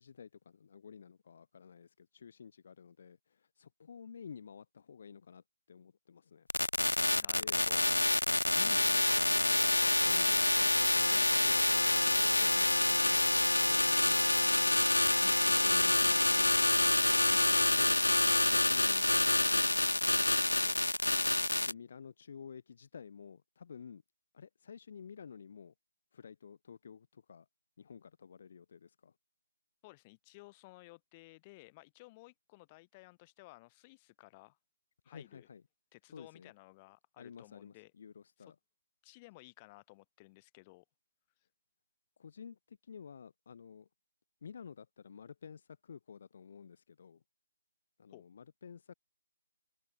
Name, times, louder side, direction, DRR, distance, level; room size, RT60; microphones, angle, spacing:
voice 1, 0.0-6.5 7.4-7.6 8.5-11.6 12.0-13.3 13.6-14.8 15.1-18.0 18.4-20.8 21.6-24.0 24.3-25.7 26.1-27.5 27.8-29.1 35.1-35.6 36.1-36.5 37.2-38.6 42.2-43.9 44.4-47.2 48.0-48.9, left 6 dB, 45° left, 4.3 m, -52 dB
sound 1, 6.5-21.7, left 2 dB, 90° left, 0.5 m, -27 dB
voice 2, 7.2-7.8 21.6-21.8 29.8-34.6 35.0-35.5 35.9-37.9 39.0-40.8 48.1-48.3, left 23 dB, 20° left, 4.2 m, -57 dB
figure-of-eight pair, 150°, 0 cm